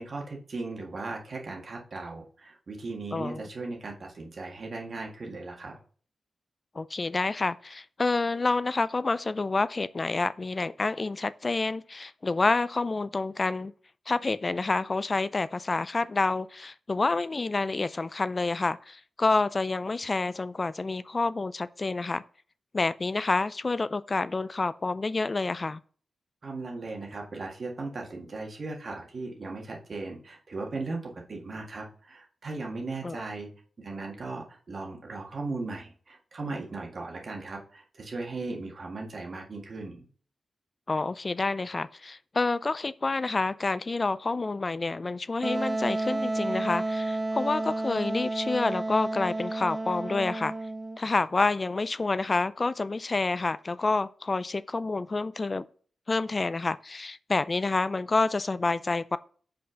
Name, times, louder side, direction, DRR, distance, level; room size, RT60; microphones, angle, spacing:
voice 1, 0.0-5.7 26.4-33.5 33.8-40.1, right 3 dB, 55° right, 1.7 m, -37 dB
voice 2, 3.1-3.5 6.8-13.7 14.1-22.2 22.7-25.8 33.0-33.2 40.9-50.5 51.0-55.7 56.1-59.2, left 3 dB, 40° left, 0.3 m, -28 dB
Wind instrument woodwind instrument, 45.4-51.0, right 2 dB, 35° right, 0.5 m, -31 dB
5.3 x 4.4 x 4.9 m
cardioid pair, 50°, 0 cm